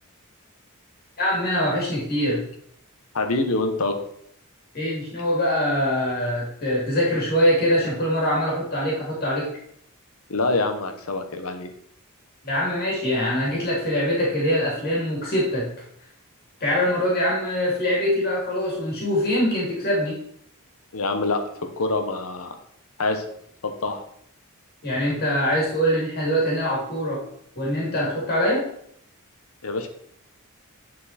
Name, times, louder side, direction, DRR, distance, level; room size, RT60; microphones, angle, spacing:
voice 1, 1.2-2.4 4.7-9.5 12.4-15.7 16.6-20.2 24.8-27.2 27.6-28.6, equal, 45° left, -4 dB, 2.8 m, -23 dB
voice 2, 3.1-3.9 10.3-11.7 20.9-22.5 23.0-23.3 23.6-24.0 29.6-29.9, left 3 dB, 70° left, 6 dB, 1.1 m, -25 dB
9.7 x 4.6 x 4.3 m, 0.69 s
head